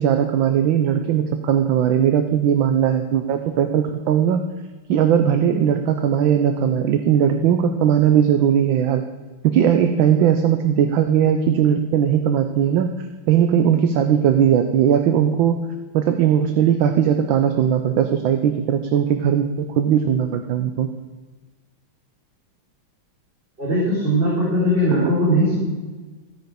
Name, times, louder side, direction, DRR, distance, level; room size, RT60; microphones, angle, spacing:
voice 1, 0.0-4.4 4.9-9.0 9.4-15.6 15.9-20.9 25.0-25.1, right 9 dB, 70° right, 7 dB, 1.4 m, -19 dB
voice 2, 23.6-25.6, equal, 25° right, -8 dB, 4.0 m, -19 dB
15.0 x 9.2 x 5.1 m, 1.3 s
omnidirectional pair, 2.4 m